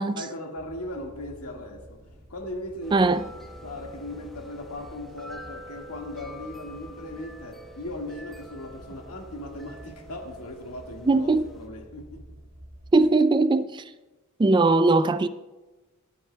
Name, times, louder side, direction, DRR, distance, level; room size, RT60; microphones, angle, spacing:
voice 1, 0.0-2.0 2.3-3.1 3.6-12.2 13.0-13.1, left 1 dB, 85° left, 1.8 m, -38 dB
sound 1, 0.5-13.0, equal, 45° right, 1.9 m, -49 dB
sound 2, 2.8-11.7, right 1 dB, ahead, 0.8 m, -47 dB
voice 2, 2.9-3.3 11.1-11.5 12.9-13.8 14.4-15.3, right 3 dB, 20° right, 0.3 m, -20 dB
25.5 x 9.0 x 2.2 m
head